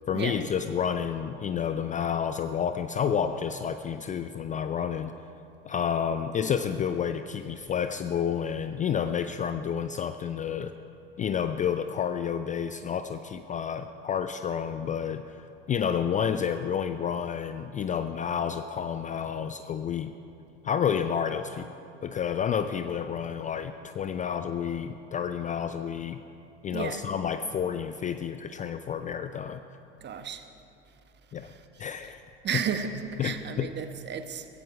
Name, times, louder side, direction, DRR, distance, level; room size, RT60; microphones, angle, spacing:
voice 1, 0.1-5.2 5.6-10.7 11.2-20.1 20.6-21.7 22.0-26.2 26.6-29.6 31.3-31.5 31.8-32.2 32.5-32.6 33.2-33.7, left 8 dB, 20° left, 10 dB, 0.5 m, -30 dB
voice 2, 26.7-27.0 30.0-30.5 31.4-31.9 32.4-34.5, right 7 dB, 30° right, 8 dB, 1.2 m, -33 dB
16.0 x 15.5 x 4.8 m, 2.7 s
hypercardioid pair, 80°, 35 cm